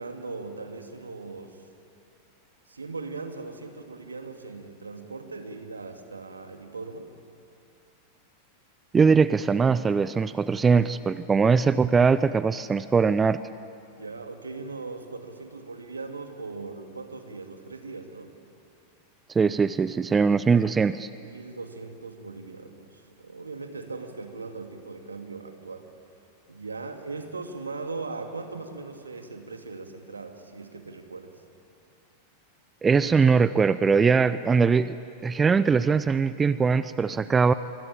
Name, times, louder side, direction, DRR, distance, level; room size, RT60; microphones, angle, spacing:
voice 1, 0.0-1.6 2.7-7.1 13.9-18.3 21.1-25.9 26.5-31.4, right 3 dB, 75° right, 6 dB, 2.4 m, -39 dB
voice 2, 8.9-13.4 19.3-21.1 32.8-35.0 35.2-37.5, right 5 dB, 15° right, 16 dB, 0.6 m, -21 dB
24.5 x 24.5 x 8.9 m, 2.5 s
figure-of-eight pair, 90°, 0 cm